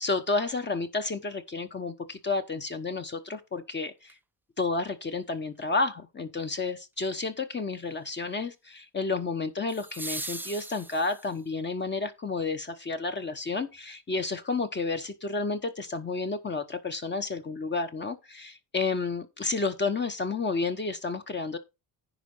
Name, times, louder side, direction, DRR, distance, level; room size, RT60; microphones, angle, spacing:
voice 1, 0.0-4.1 4.6-21.6, left 3 dB, 30° left, 1.0 m, -31 dB
sound 1, 4.0-4.1 9.7-11.5 13.7-13.8, right 2 dB, 5° right, 0.4 m, -39 dB
10.0 x 4.7 x 5.4 m
cardioid pair, 110°, 39 cm